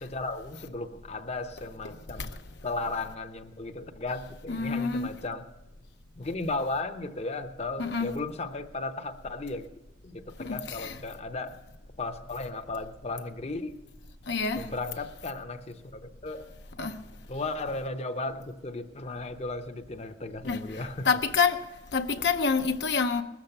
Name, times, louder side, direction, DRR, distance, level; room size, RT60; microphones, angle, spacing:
voice 1, 0.0-2.3 2.6-5.4 6.2-9.7 10.0-11.6 12.0-13.8 14.6-16.5 17.3-21.1, left 2 dB, 35° left, 0.8 m, -35 dB
voice 2, 4.5-5.1 7.8-8.1 10.4-10.9 14.3-14.7 16.8-17.0 20.4-20.6 21.0-21.6 21.9-23.2, left 5 dB, 70° left, 0.7 m, -27 dB
20.5 x 7.2 x 6.6 m
head